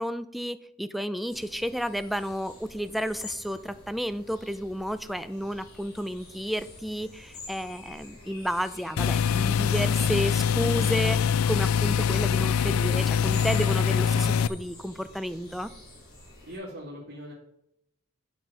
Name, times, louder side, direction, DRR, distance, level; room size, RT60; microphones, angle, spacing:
voice 1, 0.0-15.7, equal, ahead, 12 dB, 0.4 m, -32 dB
sound 1, 1.3-16.6, left 2 dB, 50° left, 4.4 m, -48 dB
sound 2, 9.0-14.5, left 7 dB, 75° left, 0.4 m, -24 dB
voice 2, 16.4-17.3, equal, 55° right, -7 dB, 2.4 m, -40 dB
8.9 x 6.1 x 5.5 m, 0.78 s
head